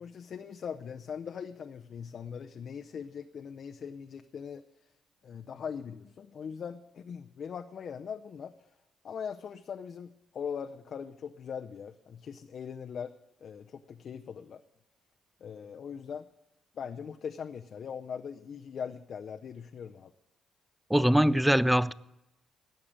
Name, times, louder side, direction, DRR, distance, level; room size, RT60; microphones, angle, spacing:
voice 1, 0.0-4.6 5.2-8.7 9.0-13.1 13.4-14.6 15.4-16.3 16.7-20.1, left 7 dB, 55° left, 0.6 m, -40 dB
voice 2, 20.9-21.9, equal, 5° right, 0.4 m, -22 dB
16.0 x 6.7 x 8.9 m
cardioid pair, 90°, 0 cm